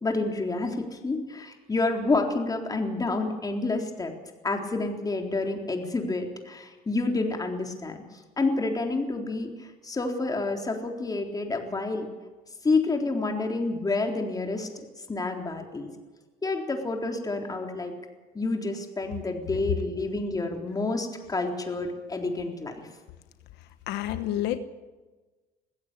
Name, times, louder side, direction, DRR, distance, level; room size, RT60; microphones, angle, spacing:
voice 1, 0.0-4.1 4.4-8.0 8.4-12.1 12.6-14.7 15.1-15.9 16.4-17.9 18.3-22.9, left 3 dB, 20° left, 3 dB, 3.8 m, -29 dB
voice 2, 23.9-24.6, left 13 dB, 90° left, 10 dB, 1.2 m, -28 dB
21.5 x 16.0 x 8.3 m, 1.2 s
cardioid pair, 110°, 17 cm